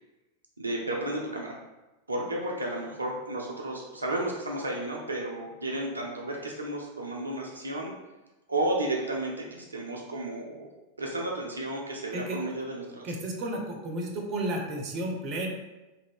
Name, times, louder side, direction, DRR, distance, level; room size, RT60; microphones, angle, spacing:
voice 1, 0.6-1.6 2.1-7.9 8.5-10.7 11.0-13.1, right 1 dB, 80° right, -2 dB, 0.4 m, -32 dB
voice 2, 13.0-15.5, right 1 dB, 35° right, 1 dB, 0.6 m, -32 dB
2.7 x 2.5 x 3.4 m, 1.1 s
figure-of-eight pair, 90°, 0 cm